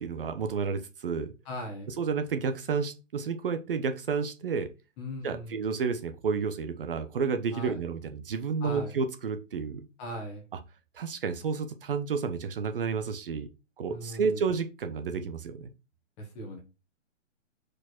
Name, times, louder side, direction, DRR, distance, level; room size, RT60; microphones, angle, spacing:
voice 1, 0.0-1.3 1.9-4.7 5.2-9.8 10.9-13.5 13.8-15.7, right 5 dB, 45° right, 7 dB, 0.9 m, -31 dB
voice 2, 1.4-1.9 5.0-5.7 7.5-7.8 8.6-8.9 10.0-10.4 13.9-14.4 16.2-16.6, equal, 15° left, 1 dB, 1.4 m, -39 dB
5.0 x 4.4 x 4.4 m, 0.29 s
hypercardioid pair, 165°, 38 cm